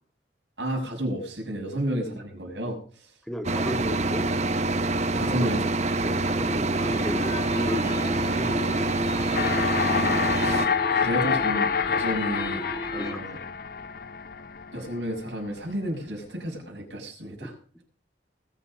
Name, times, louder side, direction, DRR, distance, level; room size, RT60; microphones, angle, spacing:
voice 1, 0.6-2.8 5.1-6.2 9.8-12.6 12.9-13.4 14.7-17.5, equal, 85° right, 0 dB, 6.4 m, -32 dB
voice 2, 3.3-4.3 5.3-5.7 6.0-9.0 13.0-13.2, equal, ahead, 7 dB, 1.3 m, -34 dB
sound 1, 3.4-10.7, right 2 dB, 40° right, 1.0 m, -26 dB
sound 2, 6.7-13.1, left 1 dB, 25° left, 3.4 m, -35 dB
sound 3, 9.3-15.3, left 6 dB, 55° left, 0.7 m, -27 dB
20.5 x 7.1 x 6.4 m, 0.42 s
head